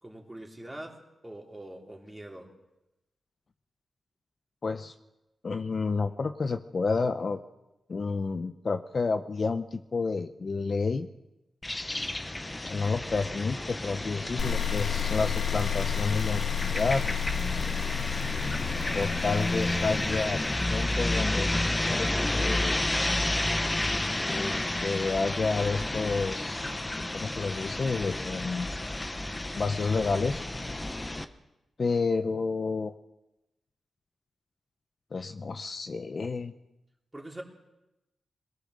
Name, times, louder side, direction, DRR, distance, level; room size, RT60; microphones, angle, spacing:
voice 1, 0.0-2.5 37.1-37.4, right 1 dB, 15° right, 0 dB, 3.4 m, -43 dB
voice 2, 4.6-4.9 5.4-7.4 7.9-11.1 12.7-17.0 18.9-20.4 20.7-21.6 21.9-22.8 24.2-26.7 27.1-28.7 29.6-30.4 31.8-32.9 35.1-36.5, left 4 dB, 45° left, 8 dB, 0.8 m, -30 dB
sound 1, 11.6-31.2, left 1 dB, 15° left, 1.1 m, -31 dB
sound 2, 14.4-21.5, left 9 dB, 70° left, 1.6 m, -32 dB
21.5 x 18.5 x 6.5 m, 0.95 s
wide cardioid pair, 105°, 0 cm